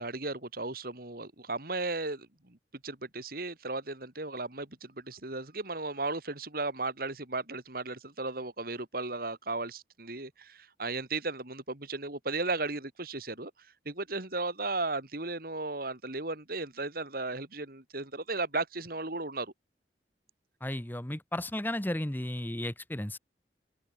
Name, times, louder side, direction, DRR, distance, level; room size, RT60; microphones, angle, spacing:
voice 1, 0.0-2.6 2.8-13.5 13.9-19.5, right 3 dB, 55° right, 3.6 m, -35 dB
voice 2, 20.6-23.2, left 1 dB, 10° left, 1.1 m, -34 dB
head